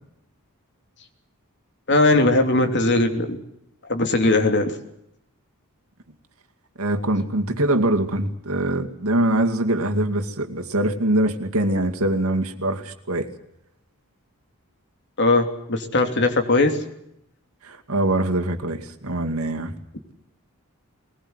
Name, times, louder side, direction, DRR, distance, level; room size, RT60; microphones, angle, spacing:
voice 1, 1.9-3.4 3.9-4.7 15.2-16.8, left 2 dB, 50° left, 5 dB, 3.1 m, -19 dB
voice 2, 6.8-13.3 17.6-19.7, right 1 dB, 75° right, 5 dB, 2.3 m, -23 dB
21.5 x 20.5 x 8.1 m, 0.79 s
head